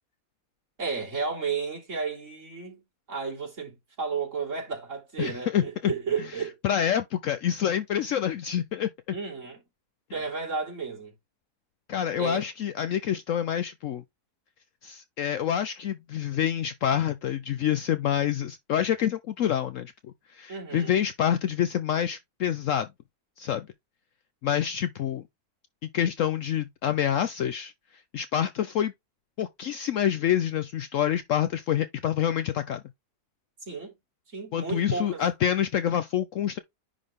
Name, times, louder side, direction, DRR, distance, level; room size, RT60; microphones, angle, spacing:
voice 1, 0.8-2.8 3.1-6.6 9.1-9.6 10.1-11.1 12.2-12.5 20.5-21.0 33.7-33.9 34.3-35.2, right 5 dB, 50° right, 3.7 m, -33 dB
voice 2, 5.2-5.9 6.6-8.9 11.9-14.0 14.8-19.9 20.3-22.9 23.4-23.7 24.4-25.2 25.8-27.7 28.1-28.9 29.4-32.8 34.5-36.6, left 10 dB, 65° left, 0.8 m, -27 dB
10.0 x 4.0 x 3.5 m
omnidirectional pair, 1.7 m